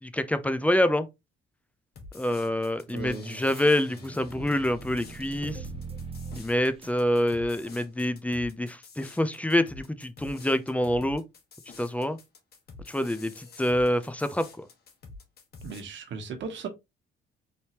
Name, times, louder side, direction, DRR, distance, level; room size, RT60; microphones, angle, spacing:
voice 1, 0.0-1.1 2.1-5.6 6.3-11.2 11.8-12.2 12.9-14.7, left 1 dB, 5° left, 0.6 m, -26 dB
sound 1, 2.0-15.8, left 3 dB, 50° left, 1.5 m, -48 dB
sound 2, 2.9-7.8, right 4 dB, 30° right, 0.7 m, -42 dB
voice 2, 2.9-3.4 15.6-16.7, right 5 dB, 70° right, 1.2 m, -37 dB
4.2 x 3.5 x 3.0 m
cardioid pair, 90°, 20 cm